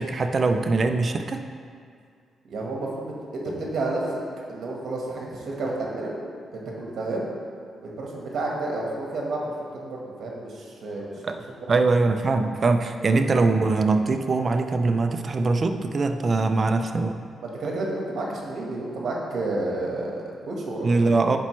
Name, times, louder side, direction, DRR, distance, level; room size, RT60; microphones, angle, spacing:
voice 1, 0.0-1.4 11.2-11.4 11.7-17.2 20.8-21.4, right 3 dB, 40° right, 6 dB, 0.4 m, -22 dB
voice 2, 2.5-4.2 4.5-6.1 6.5-7.3 7.8-11.1 13.0-13.1 17.4-20.9, right 2 dB, 65° right, -2 dB, 1.4 m, -30 dB
10.5 x 4.3 x 3.2 m, 2.2 s
cardioid pair, 115°, 0 cm